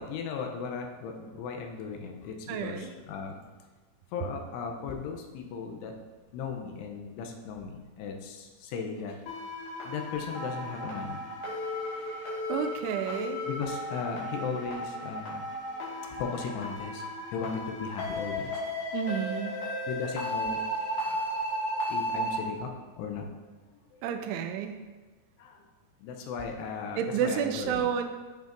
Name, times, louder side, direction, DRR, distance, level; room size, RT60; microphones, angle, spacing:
voice 1, 0.0-3.4 4.1-5.9 6.3-9.2 9.8-11.2 13.5-15.5 16.2-17.0 17.3-18.5 19.9-20.6 21.1-21.2 21.9-22.7 23.0-23.3 25.4-25.6 26.0-27.9, left 5 dB, 90° left, 3 dB, 2.8 m, -36 dB
voice 2, 2.5-2.9 12.5-13.4 18.9-19.6 24.0-24.8 27.0-28.1, right 8 dB, 90° right, 7 dB, 2.6 m, -30 dB
sound 1, 9.3-22.4, equal, 65° left, 3.1 m, -34 dB
9.1 x 5.2 x 2.6 m, 1.3 s
omnidirectional pair, 4.6 m